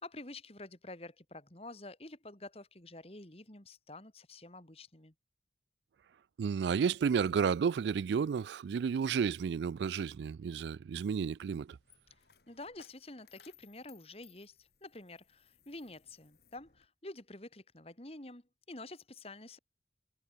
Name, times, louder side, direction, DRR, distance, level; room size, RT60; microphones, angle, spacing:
voice 1, 0.0-5.1 12.5-19.6, left 2 dB, 35° left, 2.7 m, -49 dB
voice 2, 6.4-11.8, right 6 dB, 75° right, 0.3 m, -32 dB
Coin (dropping), 10.8-16.9, left 7 dB, 65° left, 4.7 m, -65 dB
head